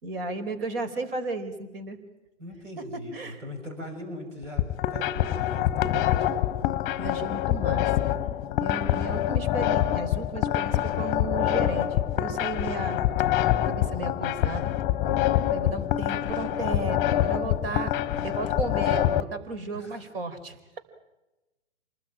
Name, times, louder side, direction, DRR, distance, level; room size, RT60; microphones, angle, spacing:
voice 1, 0.0-2.0 2.8-3.4 7.0-7.9 8.6-13.0 13.7-14.7 15.5-17.9 18.2-20.8, right 3 dB, 50° right, 11 dB, 4.4 m, -34 dB
voice 2, 2.4-6.3 18.1-18.2 19.7-20.0, left 1 dB, 80° right, 4 dB, 6.6 m, -40 dB
sound 1, 4.4-19.2, left 12 dB, 20° left, 1.1 m, -25 dB
28.0 x 20.0 x 9.0 m, 1.0 s
figure-of-eight pair, 130°, 36 cm